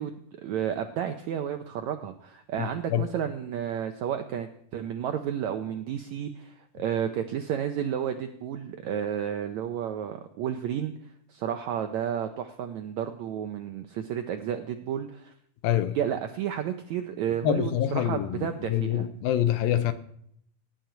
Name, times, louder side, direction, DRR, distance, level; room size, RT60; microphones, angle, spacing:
voice 1, 0.0-10.9 11.3-15.3 15.9-19.1, right 9 dB, 80° right, 1.6 m, -32 dB
voice 2, 2.6-3.1 15.6-16.0 17.4-19.9, left 11 dB, 85° left, 2.6 m, -26 dB
17.5 x 6.0 x 9.2 m
omnidirectional pair, 4.2 m